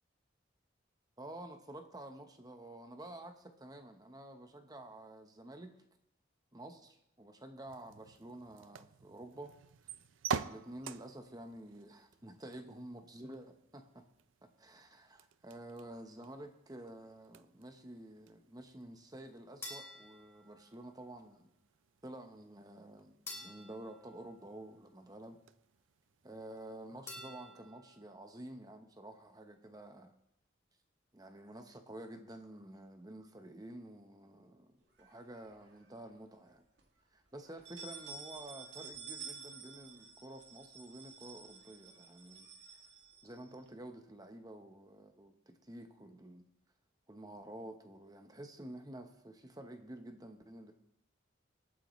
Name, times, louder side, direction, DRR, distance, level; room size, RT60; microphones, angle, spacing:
voice 1, 1.2-5.8 6.5-9.5 10.4-14.0 14.4-21.5 22.0-25.4 26.2-30.1 31.1-36.6 37.1-42.5 43.2-46.4 47.1-50.7, right 1 dB, 20° right, 6 dB, 0.9 m, -50 dB
sound 1, 7.7-27.5, right 6 dB, 80° right, 0.5 m, -49 dB
sound 2, 19.6-21.1 23.3-25.1 27.1-28.2, left 2 dB, 15° left, 2.9 m, -51 dB
sound 3, 35.0-35.9 36.3-36.4 36.8-36.9 37.4-43.7, right 6 dB, 60° right, 2.1 m, -51 dB
26.0 x 9.2 x 3.1 m, 0.78 s
head